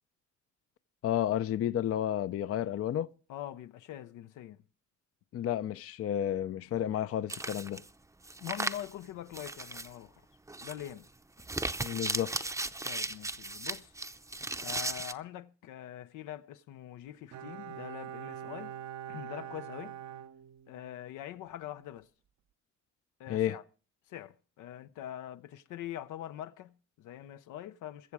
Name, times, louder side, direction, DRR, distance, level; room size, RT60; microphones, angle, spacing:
voice 1, 1.0-3.1 5.3-7.8 11.8-12.5 23.3-23.6, left 11 dB, 50° left, 0.5 m, -31 dB
voice 2, 3.3-4.6 8.4-10.1 10.6-11.1 12.8-13.9 14.6-18.7 19.1-20.0 20.7-22.1 23.2-23.6 24.1-28.1, left 12 dB, 90° left, 0.7 m, -43 dB
sound 1, 7.3-7.9 8.2-8.9 9.3-9.9 10.5-10.9 11.4-15.1, right 2 dB, 10° right, 0.6 m, -36 dB
Bowed string instrument, 17.3-21.1 21.4-21.5, right 10 dB, 70° right, 0.8 m, -44 dB
22.0 x 7.3 x 4.8 m
cardioid pair, 90°, 30 cm